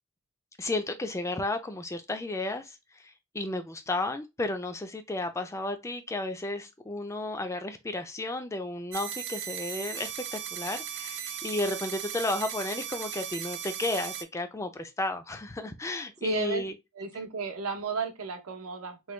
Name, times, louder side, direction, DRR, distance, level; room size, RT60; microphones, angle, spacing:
voice 1, 0.6-16.7, left 2 dB, 15° left, 0.3 m, -33 dB
sound 1, 8.9-14.2, right 9 dB, 55° right, 0.4 m, -37 dB
voice 2, 16.2-16.6 17.0-19.1, right 5 dB, 75° right, 0.7 m, -33 dB
3.1 x 2.2 x 3.1 m
head